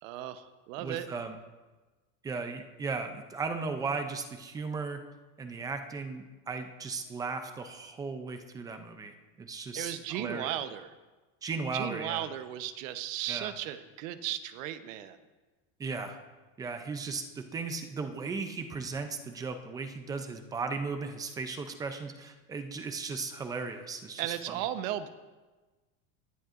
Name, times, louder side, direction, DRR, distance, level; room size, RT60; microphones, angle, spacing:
voice 1, 0.0-1.1 9.7-10.9 11.7-15.2 24.2-25.1, right 12 dB, 80° right, 11 dB, 0.9 m, -36 dB
voice 2, 0.8-1.4 2.2-5.0 5.4-10.5 11.4-12.3 13.3-13.5 15.8-16.2 16.6-24.4, right 4 dB, 10° right, 7 dB, 0.3 m, -36 dB
19.0 x 11.0 x 2.5 m, 1.2 s
cardioid pair, 170°, 39 cm